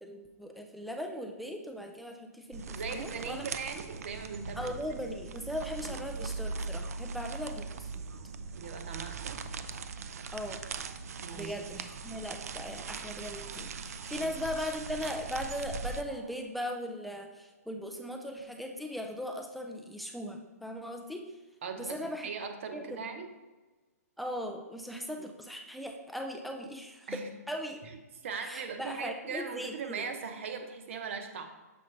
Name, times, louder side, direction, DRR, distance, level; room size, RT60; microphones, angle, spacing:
voice 1, 0.0-3.5 4.6-8.0 10.3-10.6 11.3-21.3 21.8-22.3 22.7-23.0 24.2-27.8 28.4-30.0, equal, ahead, 3 dB, 0.3 m, -39 dB
sound 1, 2.5-16.0, right 4 dB, 65° right, 0.5 m, -40 dB
voice 2, 2.7-4.7 5.9-6.0 8.6-9.5 11.2-11.5 14.1-14.3 21.6-23.3 27.1-27.3 28.2-31.4, right 5 dB, 50° right, 5 dB, 0.9 m, -39 dB
sound 2, 6.3-6.4 6.8-13.1 13.4-14.7 15.0-16.4, right 5 dB, 80° right, 1.1 m, -58 dB
7.0 x 5.0 x 3.2 m, 1.2 s
hypercardioid pair, 165°, 9 cm